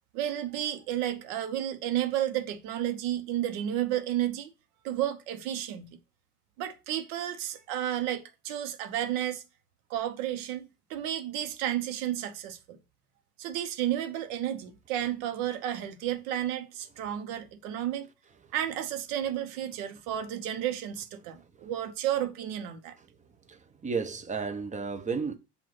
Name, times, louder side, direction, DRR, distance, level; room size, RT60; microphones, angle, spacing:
voice 1, 0.1-4.5 4.8-6.0 6.6-9.4 9.9-12.8 13.4-18.1 18.5-22.9, right 11 dB, 60° right, 1.2 m, -32 dB
voice 2, 23.5-25.4, right 5 dB, 15° right, 0.9 m, -33 dB
7.4 x 2.8 x 5.8 m
hypercardioid pair, 75°, 47 cm